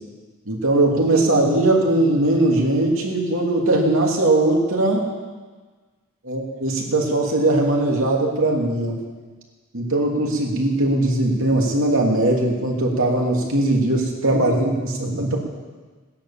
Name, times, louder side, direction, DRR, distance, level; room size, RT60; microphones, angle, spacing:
voice 1, 0.5-5.1 6.2-9.0 9.7-15.4, right 2 dB, 65° right, -1 dB, 3.0 m, -20 dB
18.0 x 10.0 x 7.2 m, 1.4 s
head